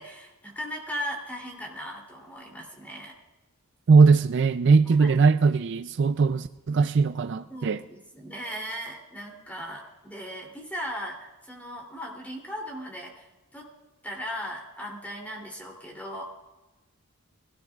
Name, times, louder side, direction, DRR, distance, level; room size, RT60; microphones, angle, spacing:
voice 1, 0.0-3.1 4.9-5.1 7.5-13.7 14.0-16.2, equal, 5° left, -1 dB, 2.8 m, -38 dB
voice 2, 3.9-7.8, right 4 dB, 55° right, 11 dB, 0.4 m, -20 dB
21.0 x 17.0 x 2.4 m, 1.1 s
head